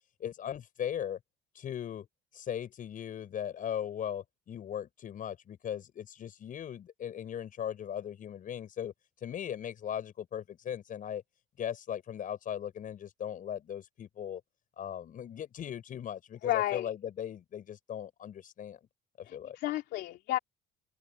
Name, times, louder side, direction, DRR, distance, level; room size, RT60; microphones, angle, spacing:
voice 1, 0.2-1.2 1.6-2.1 2.3-8.9 9.2-11.2 11.6-14.4 14.8-18.8 19.2-19.6, left 9 dB, 55° left, 7.2 m, -38 dB
voice 2, 16.4-16.9 19.2-20.4, left 15 dB, 80° left, 3.1 m, -32 dB
cardioid pair, 110°, 17 cm